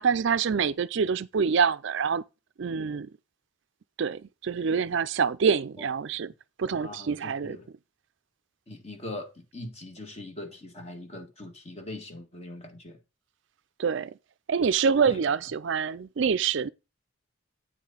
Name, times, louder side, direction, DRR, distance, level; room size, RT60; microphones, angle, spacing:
voice 1, 0.0-2.2 2.6-3.1 4.0-6.3 6.6-7.6 13.8-14.1 14.5-16.7, right 6 dB, 60° right, 0.4 m, -26 dB
voice 2, 6.7-7.7 8.7-13.0 15.1-15.2, left 1 dB, 30° left, 1.7 m, -41 dB
9.1 x 5.9 x 4.0 m
head